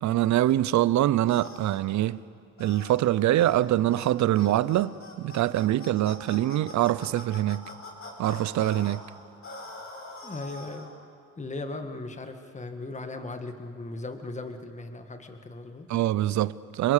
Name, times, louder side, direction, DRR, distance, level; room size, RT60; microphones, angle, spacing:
voice 1, 0.0-2.2 2.6-7.7 8.2-9.0 15.9-16.9, right 14 dB, 70° right, 0.6 m, -24 dB
sound 1, 1.3-1.8 2.6-3.0 3.4-3.6 3.9-4.1 4.4-9.0 9.4-10.9, left 2 dB, 45° left, 5.3 m, -43 dB
voice 2, 10.2-10.9 11.4-15.9, left 2 dB, 25° left, 1.8 m, -38 dB
27.5 x 21.5 x 6.7 m
cardioid pair, 90°, 30 cm